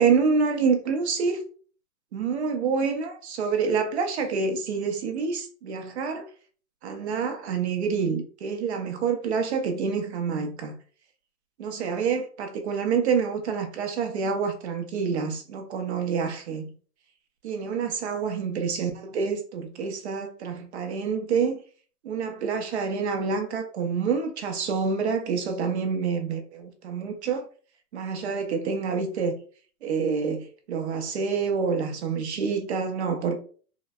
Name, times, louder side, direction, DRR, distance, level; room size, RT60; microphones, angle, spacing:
voice 1, 0.0-1.4 2.1-6.2 6.8-10.7 11.6-16.7 17.4-21.6 22.0-27.5 27.9-29.3 29.8-33.4, right 5 dB, 45° right, 0.6 m, -27 dB
3.8 x 2.1 x 2.3 m
hypercardioid pair, 160°, 46 cm